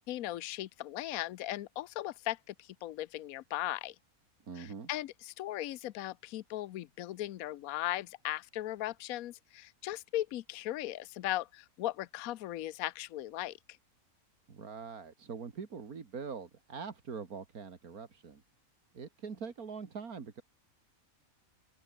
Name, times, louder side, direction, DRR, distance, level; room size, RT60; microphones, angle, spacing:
voice 1, 0.1-3.9 4.6-13.6, left 14 dB, 80° left, 1.1 m, -38 dB
voice 2, 4.5-4.9 14.5-18.4 18.9-20.4, right 5 dB, 90° right, 2.5 m, -43 dB
open air
omnidirectional pair, 1.5 m